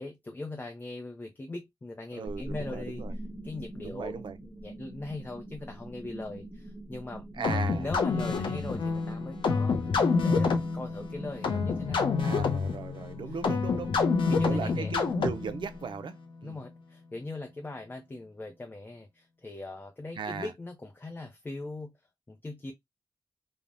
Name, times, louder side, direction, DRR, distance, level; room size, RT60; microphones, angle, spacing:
voice 1, 0.0-3.0 3.4-12.1 14.3-14.9 16.4-21.9 22.3-22.7, left 2 dB, 25° left, 0.5 m, -40 dB
voice 2, 2.1-3.2 3.8-4.4 7.4-7.9 12.2-16.6 20.2-20.5, right 6 dB, 75° right, 0.4 m, -38 dB
sound 1, 2.2-15.9, equal, 5° right, 0.8 m, -44 dB
sound 2, 7.4-15.6, left 4 dB, 85° left, 0.6 m, -28 dB
3.3 x 2.1 x 2.5 m
wide cardioid pair, 100°, 8 cm